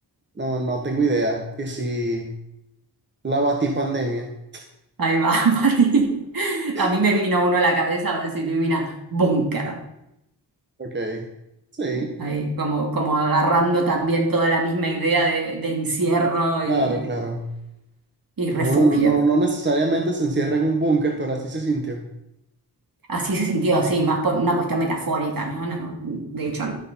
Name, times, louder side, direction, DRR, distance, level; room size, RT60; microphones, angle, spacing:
voice 1, 0.4-2.3 3.2-4.3 6.7-6.9 10.8-11.3 11.8-12.1 16.7-17.5 18.5-22.0, right 2 dB, 25° right, 2 dB, 1.2 m, -23 dB
voice 2, 5.0-6.1 6.3-9.8 12.2-17.0 18.4-19.2 23.1-26.7, right 2 dB, 60° right, 1 dB, 2.7 m, -22 dB
11.5 x 6.5 x 5.6 m, 0.85 s
wide cardioid pair, 115°, 40 cm